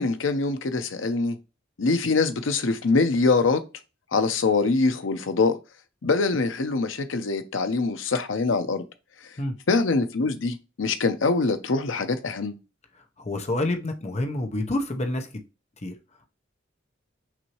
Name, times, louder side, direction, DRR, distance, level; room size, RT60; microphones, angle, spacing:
voice 1, 0.0-1.4 1.8-3.6 4.1-5.5 6.0-8.8 9.7-12.6, left 3 dB, 75° left, 0.7 m, -24 dB
voice 2, 12.9-15.4 15.8-16.0, left 1 dB, 35° left, 0.8 m, -28 dB
5.9 x 2.7 x 3.0 m
head